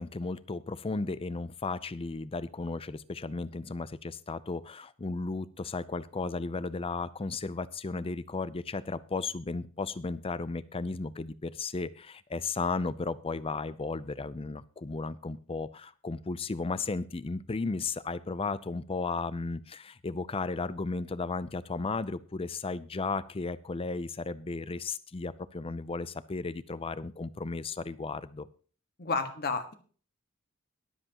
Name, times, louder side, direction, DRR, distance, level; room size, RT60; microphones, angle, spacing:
voice 1, 0.0-28.5, left 3 dB, 25° left, 16 dB, 0.5 m, -34 dB
voice 2, 29.0-29.7, left 4 dB, 45° left, 7 dB, 1.5 m, -31 dB
22.0 x 7.8 x 3.0 m, 0.41 s
head